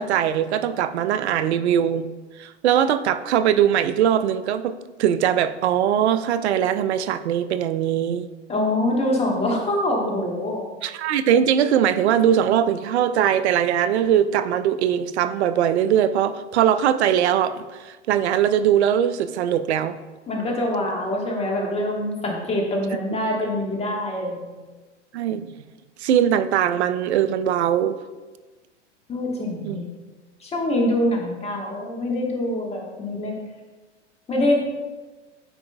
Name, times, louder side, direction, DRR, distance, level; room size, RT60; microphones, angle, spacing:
voice 1, 0.0-2.1 2.4-8.3 10.8-20.0 23.1-23.3 25.1-25.5 26.0-28.0 29.6-29.8, right 9 dB, 65° right, 14 dB, 0.5 m, -21 dB
voice 2, 8.5-10.6 20.3-24.6 29.1-29.9 30.4-33.3 34.3-34.6, left 1 dB, 15° left, 0 dB, 1.4 m, -24 dB
8.9 x 4.9 x 2.3 m, 1.2 s
hypercardioid pair, 100°, 36 cm